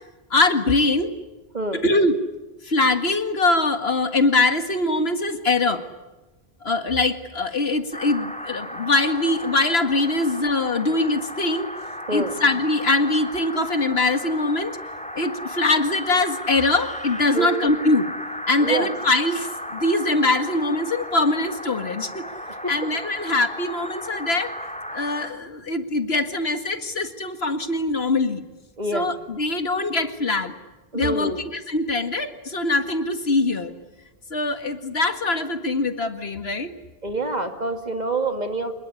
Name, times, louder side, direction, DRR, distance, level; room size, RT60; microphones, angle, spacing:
voice 1, 0.3-1.2 1.7-2.2 2.6-5.8 6.6-11.7 12.1-14.8 15.1-18.1 18.5-22.3 22.7-24.5 24.9-28.4 28.9-30.5 30.9-33.7 34.3-36.7, left 2 dB, 80° left, 9 dB, 2.2 m, -22 dB
sound 1, 7.9-25.3, equal, 5° left, 2.2 m, -35 dB
voice 2, 28.8-29.1 30.9-31.4 37.0-38.7, right 2 dB, 45° right, 6 dB, 2.7 m, -26 dB
26.5 x 21.5 x 9.8 m, 1.1 s
omnidirectional pair, 1.0 m